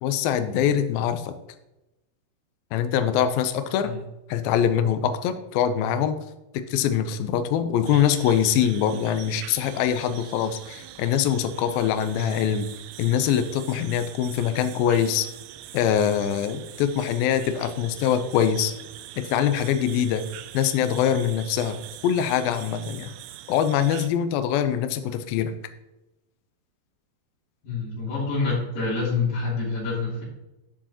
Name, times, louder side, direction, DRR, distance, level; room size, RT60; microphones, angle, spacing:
voice 1, 0.0-1.4 2.7-3.9 4.3-6.2 6.5-12.7 13.0-15.3 15.7-18.7 19.2-20.2 20.5-23.1 23.5-25.5, left 9 dB, 90° left, 9 dB, 2.1 m, -23 dB
sound 1, 7.9-24.1, right 13 dB, 85° right, 2.2 m, -43 dB
voice 2, 27.6-30.2, left 4 dB, 60° left, -12 dB, 4.9 m, -27 dB
11.5 x 7.0 x 3.0 m, 0.94 s
omnidirectional pair, 5.1 m